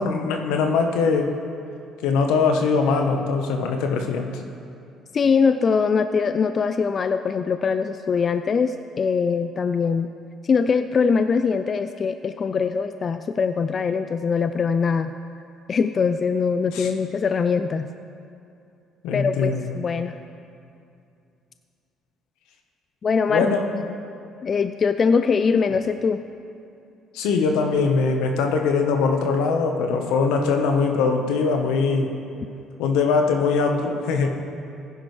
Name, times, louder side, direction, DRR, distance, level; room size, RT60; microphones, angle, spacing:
voice 1, 0.0-1.3 2.0-4.3 16.7-16.9 19.0-19.6 23.3-23.7 27.1-32.1 32.8-34.3, left 4 dB, 85° left, 4 dB, 1.1 m, -21 dB
voice 2, 5.1-10.1 10.4-15.1 15.7-17.9 19.1-20.2 23.0-23.5 24.4-26.2, left 5 dB, 40° left, 9 dB, 0.4 m, -22 dB
15.0 x 10.0 x 3.3 m, 2.6 s
supercardioid pair, 80°, 0 cm